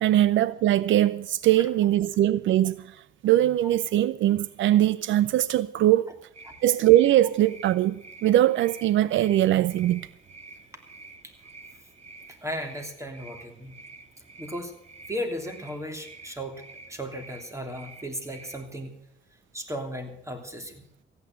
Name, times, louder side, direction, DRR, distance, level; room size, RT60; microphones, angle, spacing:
voice 1, 0.0-3.0 3.2-6.1 6.6-10.1, right 13 dB, 75° right, 0.5 m, -21 dB
sound 1, 6.3-18.7, right 3 dB, 35° right, 1.9 m, -49 dB
voice 2, 12.4-13.7 14.4-14.7 15.1-18.9 19.5-20.8, equal, 15° right, 3.0 m, -35 dB
15.0 x 9.7 x 7.7 m
cardioid pair, 90°, 20 cm